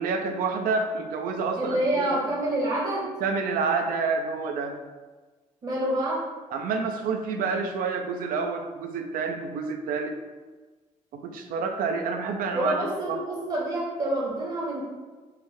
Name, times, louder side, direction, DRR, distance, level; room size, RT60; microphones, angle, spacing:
voice 1, 0.0-2.2 3.2-4.8 6.5-10.1 11.1-12.8 13.1-13.2, right 4 dB, 55° right, 5 dB, 0.4 m, -28 dB
voice 2, 1.6-3.1 5.6-6.3 12.5-14.8, right 1 dB, 35° right, -4 dB, 0.9 m, -27 dB
3.4 x 2.2 x 3.3 m, 1.3 s
figure-of-eight pair, 50°, 18 cm